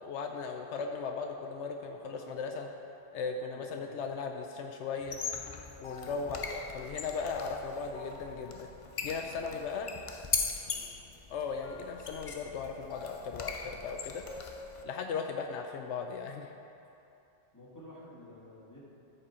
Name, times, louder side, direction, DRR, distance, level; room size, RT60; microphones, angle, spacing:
voice 1, 0.0-2.7 3.1-5.2 5.8-8.7 9.0-9.9 11.3-14.2 14.8-16.5, left 5 dB, 80° left, 3 dB, 0.9 m, -37 dB
voice 2, 2.0-2.4 3.3-4.0 5.9-6.5 9.2-9.6 10.6-10.9 17.5-18.9, left 1 dB, 15° left, -7 dB, 1.8 m, -52 dB
sound 1, 5.0-14.8, left 5 dB, 45° left, 0.4 m, -40 dB
13.0 x 5.1 x 4.3 m, 2.8 s
omnidirectional pair, 1.2 m